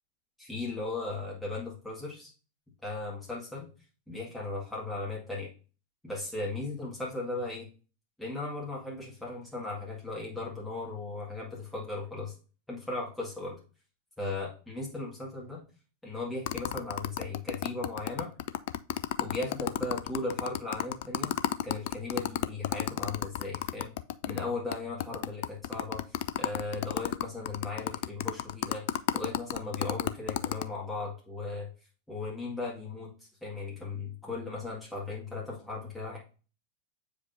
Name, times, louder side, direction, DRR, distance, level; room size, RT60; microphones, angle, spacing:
voice 1, 0.4-2.3 2.8-3.7 4.1-5.5 6.0-7.7 8.2-12.3 12.7-13.6 14.2-15.6 16.0-18.3 19.2-21.3 21.6-23.9 24.3-31.7 32.1-36.2, left 3 dB, 5° left, -5 dB, 1.9 m, -37 dB
sound 1, 16.4-24.4 24.7-24.8 25.0-30.6, left 13 dB, 50° left, 0.3 m, -31 dB
7.8 x 5.1 x 2.7 m, 0.36 s
figure-of-eight pair, 90°, 0 cm